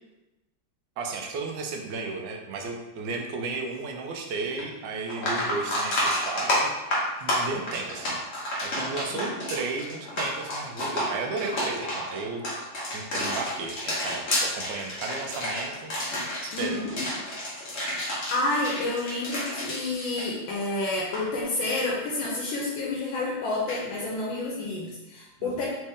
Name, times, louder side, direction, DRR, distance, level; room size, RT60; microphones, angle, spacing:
voice 1, 1.0-6.7 7.2-12.4 12.9-15.9 16.4-16.9 25.4-25.7, right 4 dB, 75° right, 2 dB, 1.3 m, -34 dB
sound 1, 4.6-4.7 5.1-20.7 21.0-21.2 23.7-23.8, left 1 dB, 40° left, 1.1 m, -30 dB
voice 2, 16.5-16.9 17.9-18.1 18.3-25.7, left 2 dB, 85° left, -4 dB, 1.5 m, -29 dB
4.3 x 3.2 x 3.5 m, 1.1 s
omnidirectional pair, 2.1 m